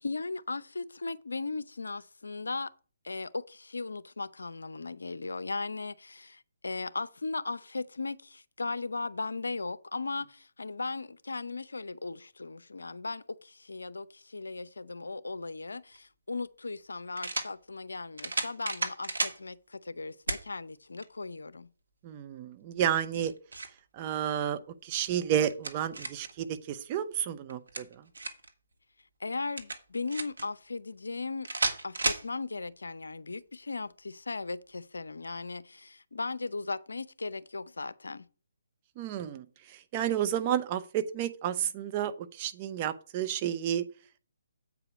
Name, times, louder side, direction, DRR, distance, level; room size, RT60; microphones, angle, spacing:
voice 1, 0.0-2.7 3.0-21.7 29.2-31.5 31.8-38.2, left 3 dB, 80° left, 0.6 m, -37 dB
sound 1, 15.9-16.0 17.2-17.5 18.2-19.4 20.3-20.5 21.0-21.1 23.0-23.8 25.1-26.3 27.5-28.5 29.6-30.5 31.4-32.3, right 3 dB, 75° right, 1.5 m, -33 dB
voice 2, 22.0-23.3 23.9-27.9 39.0-43.8, right 10 dB, 30° right, 0.8 m, -31 dB
8.2 x 4.9 x 6.0 m
figure-of-eight pair, 140°, 0 cm